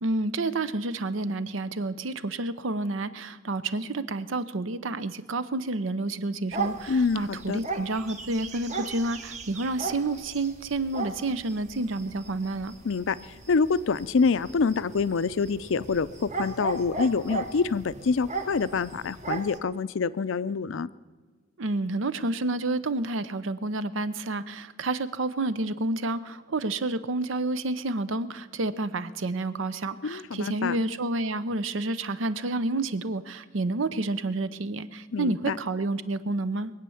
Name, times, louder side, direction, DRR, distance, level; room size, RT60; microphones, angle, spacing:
voice 1, 0.0-12.7 21.6-36.7, right 2 dB, 75° right, 14 dB, 0.7 m, -29 dB
sound 1, 6.5-19.6, right 3 dB, 35° right, 1.1 m, -37 dB
voice 2, 6.9-7.6 12.8-13.2 13.5-20.9 30.0-30.8 35.1-35.6, left 5 dB, 75° left, 16 dB, 0.5 m, -26 dB
22.5 x 8.4 x 7.1 m, 1.4 s
head